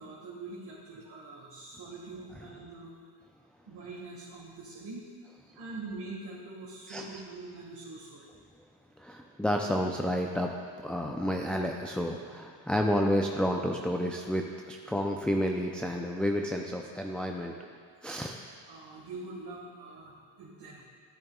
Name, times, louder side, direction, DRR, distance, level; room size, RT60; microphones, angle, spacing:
voice 1, 0.0-2.9 3.7-5.0 5.5-8.3 18.7-20.8, right 3 dB, 50° right, -6 dB, 1.9 m, -44 dB
voice 2, 9.0-10.5 10.8-17.6 18.0-18.4, equal, ahead, 1 dB, 0.5 m, -30 dB
10.5 x 10.0 x 2.4 m, 2.2 s
supercardioid pair, 65°, 49 cm